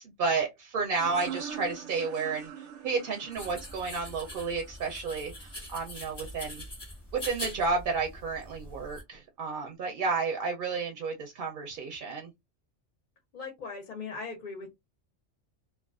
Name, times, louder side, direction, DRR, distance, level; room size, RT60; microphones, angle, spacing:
voice 1, 0.0-6.6 7.1-12.3, right 4 dB, 60° right, 0.6 m, -32 dB
sound 1, 0.9-6.3, right 8 dB, 85° right, 0.9 m, -44 dB
sound 2, 3.3-9.0, left 1 dB, 25° left, 0.9 m, -43 dB
voice 2, 13.3-14.7, left 4 dB, 50° left, 0.6 m, -39 dB
2.3 x 2.3 x 2.3 m
omnidirectional pair, 1.2 m